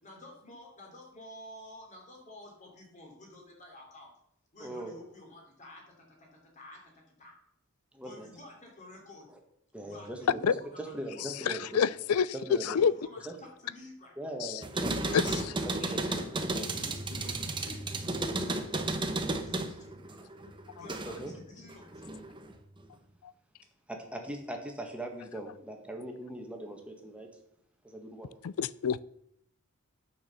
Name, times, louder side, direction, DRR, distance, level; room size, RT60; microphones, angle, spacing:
voice 1, 0.0-4.1 4.5-7.3 8.0-9.3 9.8-11.2 12.6-14.1 15.0-16.3 16.7-20.0 20.7-22.2, left 1 dB, 35° left, 3.0 m, -51 dB
voice 2, 4.6-5.0 7.9-8.3 9.3-9.4 9.7-11.9 12.3-12.9 13.2-13.3 14.2-14.9 15.6-16.1 16.5-16.7 21.0-21.3 23.9-27.3 27.8-28.3, right 1 dB, 5° right, 1.6 m, -40 dB
voice 3, 11.5-12.3 12.7-12.9 15.1-15.2 28.4-29.0, left 7 dB, 90° left, 0.4 m, -26 dB
sound 1, 14.6-21.3 21.7-22.5, right 2 dB, 20° right, 0.9 m, -33 dB
9.7 x 6.5 x 7.0 m
head